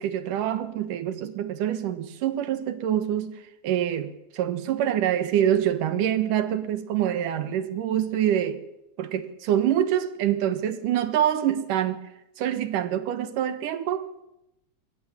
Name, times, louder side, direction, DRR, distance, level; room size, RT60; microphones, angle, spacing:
voice 1, 0.0-3.4 3.6-8.6 9.0-12.0 12.4-14.1, right 10 dB, 80° right, 2.9 m, -25 dB
22.5 x 19.0 x 7.3 m
omnidirectional pair, 3.6 m